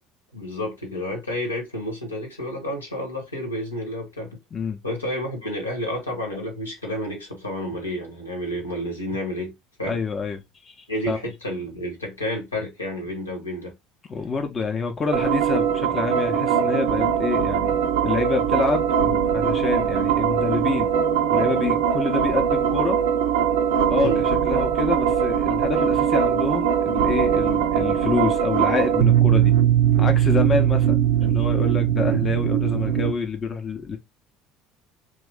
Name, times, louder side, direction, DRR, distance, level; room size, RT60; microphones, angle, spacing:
voice 1, 0.3-4.4 4.8-9.5 9.8-10.0 10.9-13.7 24.0-24.3, equal, 85° left, 1.0 m, -30 dB
voice 2, 9.8-11.2 14.1-17.7 18.0-20.9 21.3-23.0 23.9-29.5 30.0-34.0, left 4 dB, 30° left, 0.6 m, -27 dB
sound 1, 15.1-33.1, right 9 dB, 65° right, 0.4 m, -21 dB
3.0 x 2.5 x 3.5 m
figure-of-eight pair, 60°, 0 cm